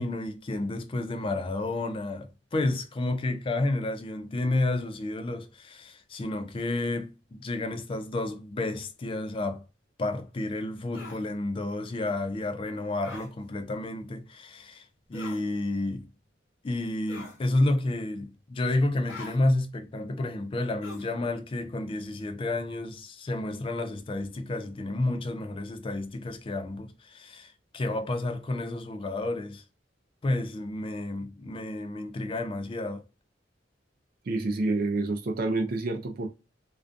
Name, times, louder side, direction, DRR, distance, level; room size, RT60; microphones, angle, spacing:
voice 1, 0.0-9.6 10.0-14.8 15.1-16.1 16.6-29.6 30.2-33.0, left 2 dB, 30° left, 0.3 m, -30 dB
sound 1, 10.9-11.2 13.0-13.3 15.1-15.4 17.1-17.4 19.1-19.4 20.8-21.1, left 3 dB, 80° left, 0.7 m, -43 dB
voice 2, 34.3-36.3, right 2 dB, 50° right, 0.4 m, -28 dB
2.4 x 2.2 x 2.5 m
head